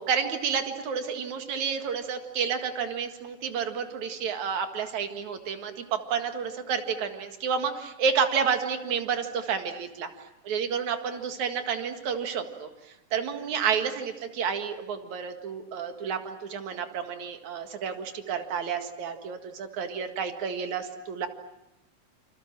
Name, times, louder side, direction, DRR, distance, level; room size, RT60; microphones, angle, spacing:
voice 1, 0.0-10.1 10.4-12.7 13.1-21.3, right 6 dB, 65° right, 6 dB, 3.2 m, -30 dB
28.5 x 27.0 x 7.5 m, 0.91 s
omnidirectional pair, 3.6 m